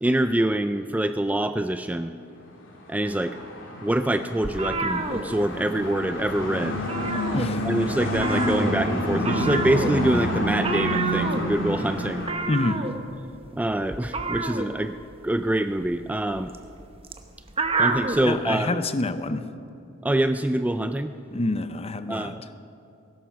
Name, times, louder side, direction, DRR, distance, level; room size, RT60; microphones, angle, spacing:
voice 1, 0.0-2.1 2.9-3.4 3.8-6.8 7.6-12.3 13.5-15.0 15.2-16.5 17.8-18.8 20.0-21.1 22.1-22.4, right 1 dB, 10° right, 10 dB, 0.3 m, -25 dB
sound 1, 2.7-12.3, left 1 dB, 65° left, 3.0 m, -29 dB
sound 2, 4.4-5.9 6.2-6.4 6.7-7.8 8.1-18.2, right 3 dB, 30° right, 0.9 m, -29 dB
voice 2, 12.5-12.8 18.2-19.4 21.3-22.3, left 2 dB, 30° left, 12 dB, 0.7 m, -27 dB
16.0 x 11.5 x 7.2 m, 2.6 s
head